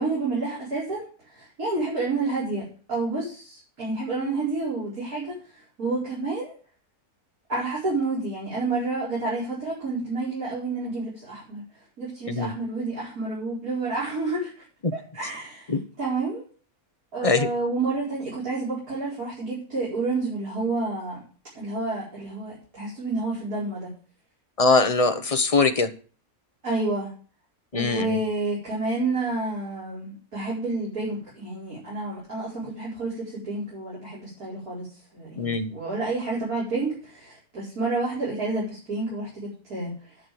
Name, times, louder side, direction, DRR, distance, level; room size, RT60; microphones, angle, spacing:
voice 1, 0.0-6.5 7.5-11.6 12.0-14.6 14.9-16.4 17.1-21.2 21.5-23.9 26.6-27.1 27.7-34.9 35.1-40.1, right 3 dB, 75° right, -8 dB, 5.5 m, -29 dB
voice 2, 24.6-25.9 27.7-28.2 35.4-35.7, left 3 dB, 30° left, 8 dB, 0.9 m, -22 dB
10.5 x 6.4 x 7.6 m, 0.40 s
omnidirectional pair, 1.6 m